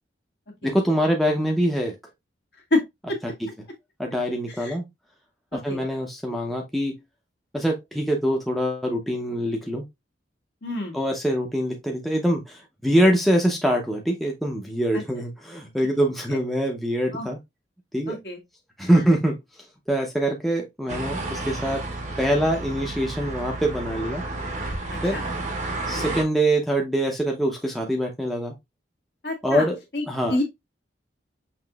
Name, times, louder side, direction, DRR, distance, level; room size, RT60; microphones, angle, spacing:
voice 1, 0.6-1.9 4.0-4.8 5.5-7.0 7.5-9.8 10.9-17.4 17.9-18.2 18.8-19.4 19.9-21.8 22.2-24.2 25.0-25.2 25.9-28.5 29.4-29.8 30.1-30.4, equal, ahead, 0.6 m, -24 dB
voice 2, 10.6-11.0 14.9-15.0 17.1-17.3 18.1-18.4 24.9-25.2 29.2-29.7 29.9-30.4, left 2 dB, 60° left, 1.4 m, -27 dB
sound 1, 20.9-26.2, right 2 dB, 40° right, 0.8 m, -31 dB
5.8 x 2.9 x 2.3 m
head